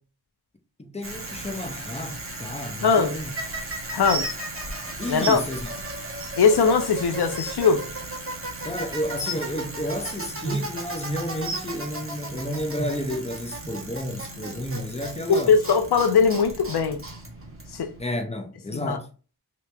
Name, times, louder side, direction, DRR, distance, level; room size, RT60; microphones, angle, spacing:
voice 1, 0.8-3.3 5.0-5.7 8.6-15.5 18.0-19.1, equal, 15° left, 0.6 m, -31 dB
Bicycle, 1.0-18.1, right 2 dB, 35° right, 1.0 m, -36 dB
voice 2, 2.8-3.1 3.9-4.3 5.1-5.4 6.4-7.8 15.3-17.0 17.7-17.9 18.7-19.0, left 5 dB, 80° left, 0.5 m, -20 dB
sound 1, 4.1-4.4 5.2-5.3 6.2-6.3 6.9-7.0 7.2-7.6 9.2-9.4 10.4-10.6 11.4-11.6 12.8-12.9 13.6-13.7 14.4-14.5, right 2 dB, 60° right, 1.0 m, -30 dB
2.9 x 2.8 x 3.3 m
wide cardioid pair, 50°, 39 cm